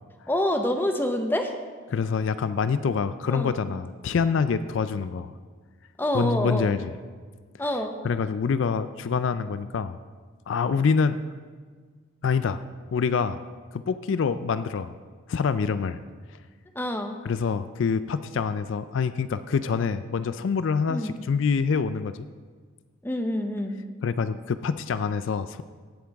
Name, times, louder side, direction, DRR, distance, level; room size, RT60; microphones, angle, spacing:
voice 1, 0.3-1.6 3.3-3.6 6.0-6.7 7.6-7.9 16.7-17.1 20.9-21.2 23.0-23.8, left 1 dB, 10° left, 5 dB, 0.7 m, -27 dB
voice 2, 1.9-5.3 6.1-6.9 8.0-10.0 10.5-11.2 12.2-12.6 12.9-13.4 13.7-14.9 15.3-16.0 17.2-22.3 24.0-25.6, left 5 dB, 65° left, 12 dB, 0.4 m, -26 dB
17.0 x 8.5 x 3.5 m, 1.5 s
head